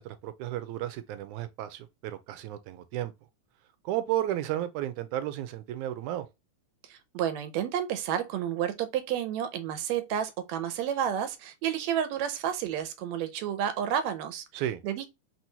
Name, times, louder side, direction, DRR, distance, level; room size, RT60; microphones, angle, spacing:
voice 1, 0.0-3.1 3.9-6.3 14.5-14.8, right 13 dB, 90° right, 2.1 m, -33 dB
voice 2, 6.9-14.4 14.8-15.1, right 9 dB, 75° right, 1.9 m, -30 dB
4.6 x 4.0 x 2.7 m
omnidirectional pair, 3.4 m